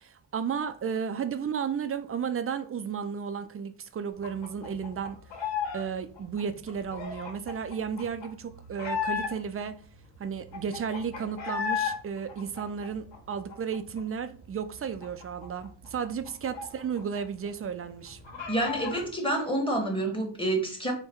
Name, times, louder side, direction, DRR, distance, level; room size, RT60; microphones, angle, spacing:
voice 1, 0.0-5.2 5.7-9.8 10.2-18.2, right 7 dB, 35° right, 0.4 m, -33 dB
sound 1, 4.2-5.8 6.1-9.6 10.0-10.1 10.3-12.0 12.3-14.0 14.3-14.4 14.7-17.2 17.5-17.6 17.9-19.1, left 7 dB, 85° left, 1.1 m, -35 dB
voice 2, 18.5-20.9, right 1 dB, 10° left, 1.1 m, -28 dB
4.4 x 2.2 x 3.4 m
cardioid pair, 90°, 44 cm